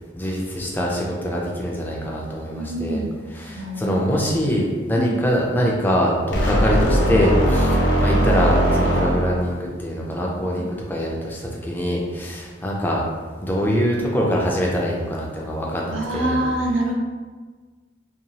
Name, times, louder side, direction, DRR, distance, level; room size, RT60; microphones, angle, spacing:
voice 1, 0.1-3.0 3.3-13.0 13.4-16.4, equal, 10° left, -2 dB, 0.3 m, -24 dB
voice 2, 2.5-3.1 3.6-4.0 5.0-5.2 10.6-10.7 15.9-16.9, right 1 dB, 85° right, 0 dB, 0.5 m, -25 dB
sound 1, 6.3-9.6, equal, 70° left, 0.5 m, -19 dB
2.8 x 2.2 x 2.7 m, 1.4 s
head